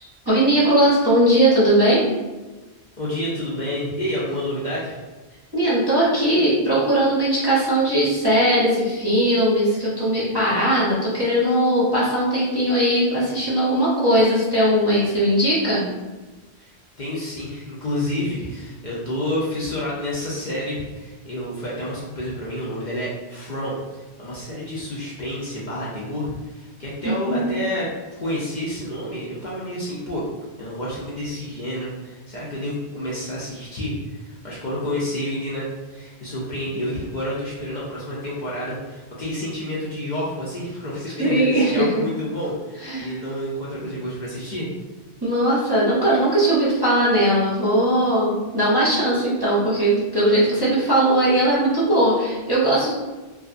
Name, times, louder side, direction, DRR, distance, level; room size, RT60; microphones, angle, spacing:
voice 1, 0.3-2.0 5.5-15.9 27.0-27.6 41.2-41.9 42.8-43.1 45.2-52.9, right 1 dB, 25° right, -8 dB, 0.6 m, -19 dB
voice 2, 3.0-5.0 16.6-16.7 17.0-23.8 24.2-27.9 28.2-30.2 30.6-44.7, left 1 dB, 55° left, -7 dB, 0.6 m, -29 dB
2.7 x 2.4 x 2.4 m, 1.2 s
omnidirectional pair, 1.1 m